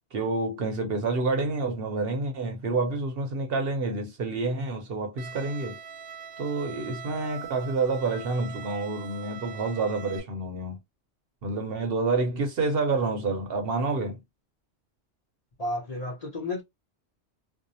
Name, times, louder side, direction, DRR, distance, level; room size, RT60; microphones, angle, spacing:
voice 1, 0.1-5.8 6.4-10.8 11.4-14.2, right 3 dB, 60° right, 0.8 m, -28 dB
Bowed string instrument, 5.2-10.2, right 7 dB, 85° right, 0.9 m, -42 dB
voice 2, 15.6-16.6, left 2 dB, 40° left, 0.8 m, -32 dB
2.6 x 2.0 x 2.6 m
omnidirectional pair, 1.2 m